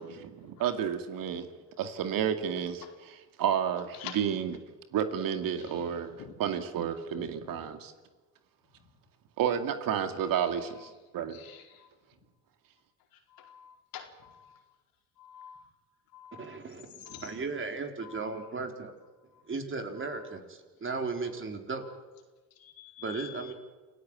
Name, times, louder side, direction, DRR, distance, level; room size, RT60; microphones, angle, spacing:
voice 1, 0.0-1.5 1.8-2.8 3.4-4.5 4.9-6.1 6.4-7.9 9.4-11.4, right 8 dB, 60° right, 8 dB, 2.5 m, -31 dB
voice 2, 3.9-4.2 5.6-6.3 7.1-7.7 8.8-8.9 10.4-10.9 11.3-11.9 13.1-14.8 15.2-15.7 16.1-17.5 18.0-18.5 19.3-19.4 20.0-20.4 21.8-22.0 22.5-23.5, left 9 dB, 65° left, 3 dB, 4.6 m, -49 dB
voice 3, 16.4-18.9 19.5-21.8 23.0-23.5, right 4 dB, 30° right, 5 dB, 4.3 m, -36 dB
28.0 x 16.0 x 9.2 m, 1.3 s
hypercardioid pair, 70°, 38 cm